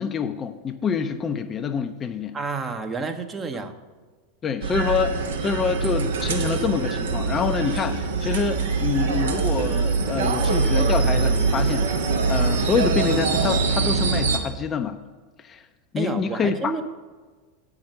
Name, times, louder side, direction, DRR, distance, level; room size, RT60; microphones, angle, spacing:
voice 1, 0.0-2.4 4.4-15.0 15.4-15.6 15.9-16.7, left 6 dB, 25° left, 8 dB, 0.5 m, -26 dB
voice 2, 2.3-3.7 15.9-16.8, right 4 dB, 20° right, 6 dB, 0.8 m, -29 dB
sound 1, 4.6-14.4, right 4 dB, 65° right, 1.0 m, -23 dB
8.6 x 6.0 x 6.5 m, 1.4 s
figure-of-eight pair, 85°, 0 cm